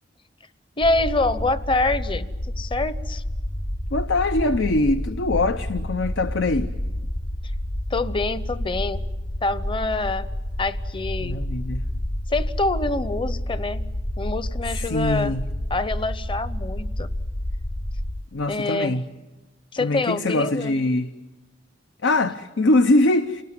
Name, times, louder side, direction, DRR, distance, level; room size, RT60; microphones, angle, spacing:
sound 1, 0.8-18.2, left 1 dB, 45° left, 1.1 m, -29 dB
voice 1, 0.8-3.2 7.9-9.0 9.4-10.3 10.6-11.4 12.3-13.8 14.2-15.4 15.7-17.1 18.5-19.0 19.7-20.8, left 2 dB, 25° left, 0.8 m, -26 dB
voice 2, 3.9-6.7 11.2-11.8 14.7-15.4 18.3-19.0 19.8-21.1 22.0-23.4, left 2 dB, 85° left, 0.8 m, -22 dB
29.0 x 19.5 x 9.5 m
head